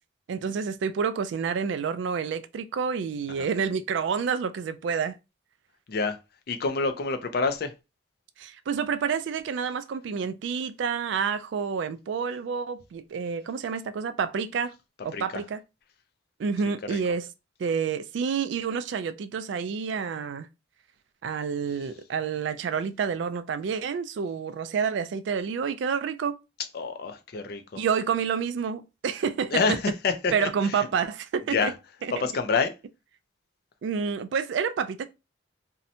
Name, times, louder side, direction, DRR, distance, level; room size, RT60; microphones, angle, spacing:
voice 1, 0.3-5.1 8.4-14.7 15.0-15.6 16.4-17.3 17.6-20.5 21.2-26.4 27.8-29.8 30.3-31.7 32.0-32.1 33.8-35.0, right 6 dB, 70° right, 0.3 m, -29 dB
voice 2, 6.5-7.7 15.1-15.4 16.9-17.0 26.7-27.8 29.5-30.9 31.5-31.7 32.1-32.7, left 4 dB, 55° left, 0.4 m, -27 dB
2.7 x 2.1 x 2.6 m
head